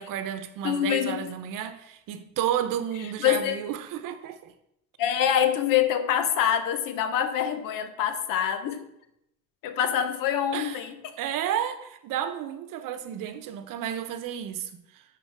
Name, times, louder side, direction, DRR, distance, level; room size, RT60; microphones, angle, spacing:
voice 1, 0.0-4.5 10.5-10.8 11.2-15.2, right 10 dB, 75° right, 0.8 m, -32 dB
voice 2, 0.6-1.3 3.2-3.6 5.0-8.8 9.6-11.2, left 9 dB, 80° left, 0.9 m, -25 dB
10.0 x 4.0 x 4.6 m
cardioid pair, 130°, 33 cm